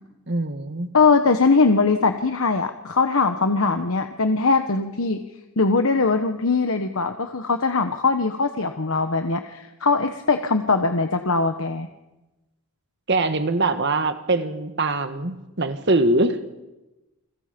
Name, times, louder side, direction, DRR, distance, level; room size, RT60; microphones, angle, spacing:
voice 1, 0.3-0.9 13.1-16.4, right 2 dB, 50° right, 9 dB, 1.6 m, -23 dB
voice 2, 0.9-5.2 5.6-11.9, left 4 dB, 75° left, 7 dB, 1.1 m, -21 dB
28.5 x 21.5 x 5.2 m, 1.0 s
head